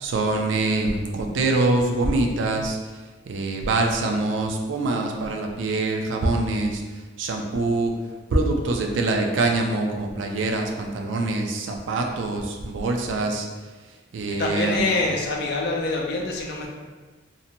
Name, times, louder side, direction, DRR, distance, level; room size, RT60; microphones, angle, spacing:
voice 1, 0.0-2.8 3.3-6.8 7.2-7.9 8.3-13.5 14.1-14.9, right 2 dB, 70° right, 2 dB, 0.4 m, -24 dB
voice 2, 14.3-16.7, left 2 dB, 55° left, -1 dB, 0.5 m, -25 dB
2.7 x 2.1 x 2.7 m, 1.3 s
head